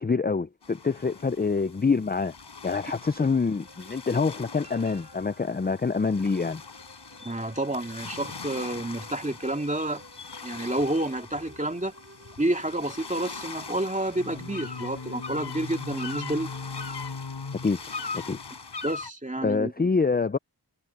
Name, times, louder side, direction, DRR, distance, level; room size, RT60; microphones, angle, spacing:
voice 1, 0.0-2.3 2.6-6.6 17.6-17.8 18.1-18.4 19.4-20.4, left 4 dB, 25° left, 0.5 m, -26 dB
sound 1, 0.6-19.1, left 4 dB, 80° left, 5.0 m, -40 dB
sound 2, 3.6-19.0, right 2 dB, 35° right, 6.2 m, -54 dB
voice 2, 7.2-10.0 10.4-11.9 12.4-16.5 18.8-19.9, right 1 dB, 20° right, 2.4 m, -29 dB
wide cardioid pair, 60°, 41 cm